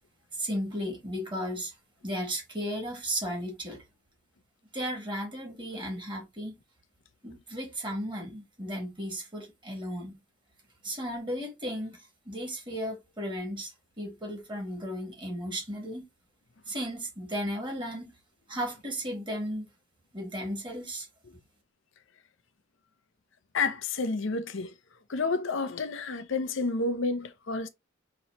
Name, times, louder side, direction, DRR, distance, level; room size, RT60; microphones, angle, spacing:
voice 1, 0.4-1.7 2.0-3.8 4.7-6.6 7.2-10.1 10.8-12.0 12.3-13.7 14.0-16.0 16.7-18.1 18.5-19.7 20.1-21.1, equal, 25° right, 2.0 m, -35 dB
voice 2, 23.5-24.7 25.1-27.7, left 3 dB, 65° left, 0.6 m, -30 dB
5.5 x 3.0 x 2.9 m
head